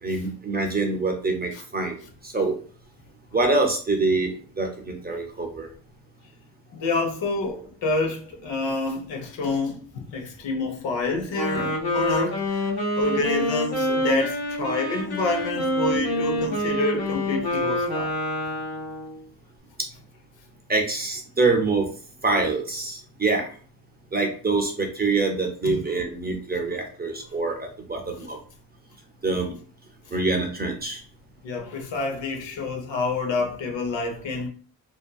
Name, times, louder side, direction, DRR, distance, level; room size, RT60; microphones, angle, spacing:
voice 1, 0.0-2.0 2.2-2.5 3.3-5.7 20.7-21.9 22.2-23.5 24.1-28.4 29.2-29.5 30.1-31.0, right 3 dB, 25° right, 0.5 m, -25 dB
voice 2, 6.7-9.8 10.1-12.7 13.0-18.1 25.6-25.8 31.4-34.5, left 3 dB, 80° left, 0.9 m, -28 dB
Wind instrument woodwind instrument, 11.3-19.2, equal, 55° left, 1.1 m, -27 dB
2.7 x 2.5 x 2.3 m
wide cardioid pair, 130°, 44 cm